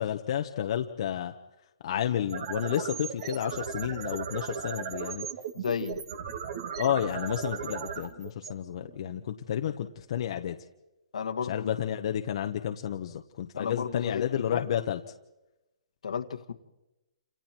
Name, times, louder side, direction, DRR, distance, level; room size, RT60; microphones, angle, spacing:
voice 1, 0.0-1.3 1.8-5.3 6.8-10.6 11.5-15.0, left 10 dB, 55° left, 5 dB, 1.3 m, -31 dB
sound 1, 2.3-9.2, right 7 dB, 50° right, 2.2 m, -37 dB
voice 2, 5.5-6.0 11.1-11.7 13.5-14.6 16.0-16.5, left 7 dB, 75° left, 7 dB, 1.9 m, -33 dB
29.0 x 28.0 x 4.6 m, 0.98 s
hypercardioid pair, 145°, 4 cm